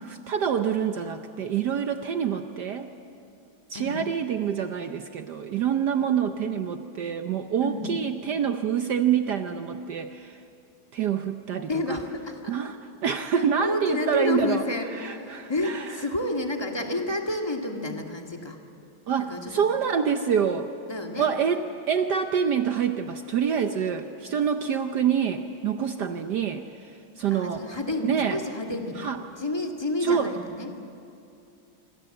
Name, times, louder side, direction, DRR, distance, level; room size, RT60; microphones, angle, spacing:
voice 1, 0.3-2.9 3.7-10.4 10.9-12.0 12.5-12.8 13.0-14.6 15.0-16.0 19.1-20.7 21.2-26.7 27.2-27.7 28.0-28.4 29.0-29.2 30.0-30.3, right 7 dB, 60° right, 7 dB, 1.3 m, -26 dB
voice 2, 11.7-12.5 13.3-18.6 19.3-19.6 20.9-21.3 26.0-26.2 27.3-29.0 29.4-30.7, left 1 dB, 10° left, 2 dB, 1.9 m, -30 dB
26.0 x 25.0 x 7.9 m, 2.6 s
omnidirectional pair, 2.3 m